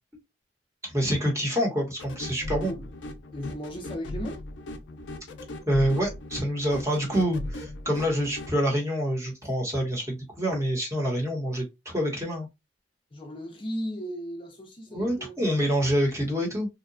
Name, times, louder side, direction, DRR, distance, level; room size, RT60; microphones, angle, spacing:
voice 1, 0.8-2.7 5.7-12.5 14.9-16.7, equal, 15° right, 0.9 m, -26 dB
sound 1, 2.0-8.6, left 1 dB, 85° left, 0.5 m, -38 dB
voice 2, 3.3-4.4 13.1-15.3, equal, 30° left, 0.5 m, -36 dB
2.8 x 2.1 x 2.5 m
head